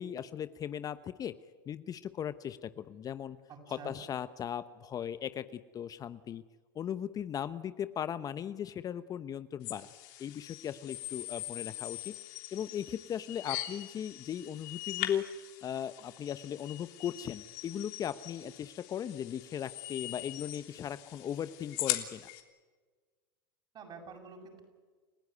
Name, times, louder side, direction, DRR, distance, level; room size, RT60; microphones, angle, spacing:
voice 1, 0.0-1.3 1.7-3.4 3.7-5.5 5.7-6.4 6.7-9.9 10.2-12.1 12.5-15.3 15.6-22.3, left 9 dB, 35° left, 14 dB, 0.9 m, -38 dB
voice 2, 3.5-4.0 23.7-24.6, right 5 dB, 40° right, 3 dB, 7.9 m, -48 dB
sound 1, 9.6-22.4, left 15 dB, 60° left, 3.3 m, -41 dB
30.0 x 15.5 x 9.6 m, 1.4 s
hypercardioid pair, 95°, 11 cm